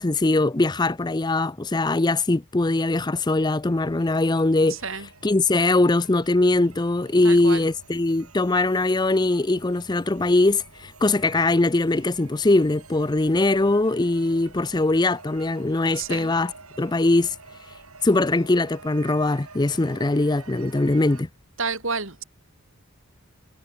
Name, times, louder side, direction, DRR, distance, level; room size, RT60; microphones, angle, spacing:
voice 1, 0.0-4.8 5.2-16.5 16.8-17.4 18.0-21.3, left 2 dB, 20° left, 0.5 m, -21 dB
sound 1, 3.7-21.2, right 4 dB, 75° right, 7.9 m, -48 dB
voice 2, 4.7-5.1 7.2-7.7 15.9-16.3 21.6-22.2, right 4 dB, 60° right, 4.2 m, -30 dB
head